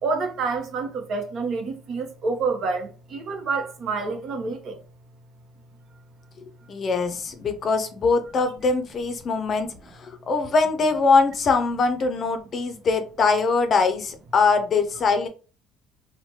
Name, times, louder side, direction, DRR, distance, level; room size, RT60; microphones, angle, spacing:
voice 1, 0.0-4.8, right 4 dB, 55° right, 0.8 m, -28 dB
voice 2, 6.7-15.3, left 4 dB, 45° left, 0.5 m, -22 dB
3.1 x 2.1 x 2.9 m
supercardioid pair, 80°, 0 cm